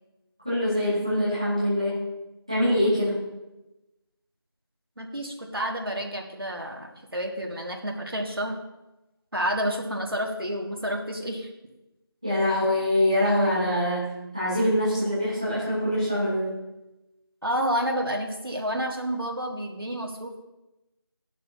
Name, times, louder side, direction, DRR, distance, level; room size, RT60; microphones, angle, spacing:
voice 1, 0.4-2.0 2.5-3.2 12.2-16.5, left 1 dB, 15° right, -11 dB, 2.1 m, -24 dB
voice 2, 5.0-8.6 9.3-11.5 17.4-20.4, equal, 65° right, 0 dB, 1.8 m, -30 dB
14.0 x 11.5 x 2.8 m, 0.99 s
figure-of-eight pair, 180°, 13 cm